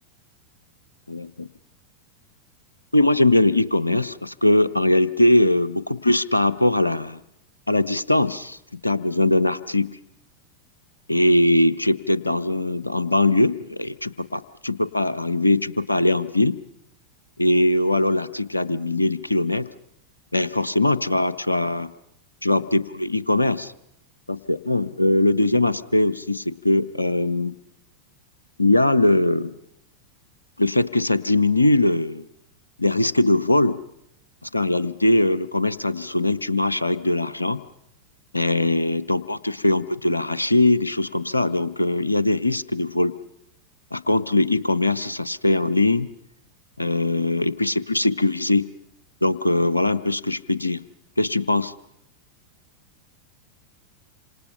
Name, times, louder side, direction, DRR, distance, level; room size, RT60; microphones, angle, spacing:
voice 1, 2.9-7.2 7.7-9.9 11.1-16.6 17.4-19.7 20.3-21.9 22.4-23.7 24.3-27.5 28.6-29.5 30.6-32.3 32.8-33.8 34.4-37.6 38.3-43.2 43.9-46.1 46.8-48.6 49.2-50.8 51.2-51.7, left 1 dB, 85° left, 15 dB, 0.8 m, -21 dB
27.0 x 26.5 x 5.7 m, 0.78 s
figure-of-eight pair, 90°, 0 cm